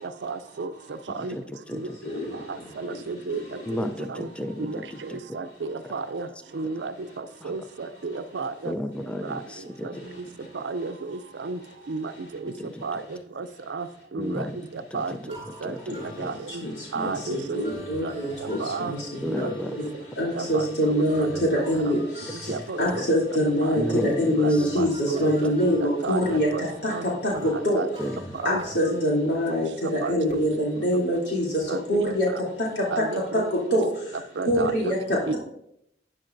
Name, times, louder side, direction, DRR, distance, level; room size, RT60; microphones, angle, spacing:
voice 1, 0.2-0.7 1.1-1.3 1.7-1.9 2.8-4.3 4.6-6.3 6.5-8.7 9.2-9.4 9.8-9.9 10.5-11.6 11.9-12.1 12.4-12.5 12.8-13.0 13.4-13.9 14.1-14.5 14.9-15.2 15.6-15.7 16.2-16.3 16.9-17.6 18.0-18.1 18.4-19.0 19.3-19.4 20.3-21.3 21.5-22.0 22.5-23.0 23.6-25.5 26.0-26.6 26.9-27.0 27.5-27.9 28.4-28.6 28.9-29.1 30.0-30.4 31.7-32.1 32.9-33.8 34.4-35.0 35.3-35.4, right 4 dB, 80° right, 11 dB, 0.5 m, -32 dB
voice 2, 1.2-2.0 3.7-5.2 7.4-7.5 8.6-10.0 12.5-12.8 14.1-14.6 14.9-15.3 15.6-16.3 19.2-19.8 22.4-22.6 22.9-23.0 23.7-24.8 28.0-28.2 35.1-35.3, left 1 dB, 5° left, 7 dB, 0.4 m, -33 dB
sound 1, 15.3-29.0, right 1 dB, 30° right, 3.9 m, -44 dB
voice 3, 16.6-19.9 20.2-22.3 22.8-26.5 26.8-26.9 27.2-27.3 27.6-27.8 28.4-31.5 31.9-32.3 33.5-33.8 34.5-35.2, equal, 75° left, -4 dB, 3.0 m, -24 dB
11.5 x 9.6 x 2.6 m, 0.76 s
head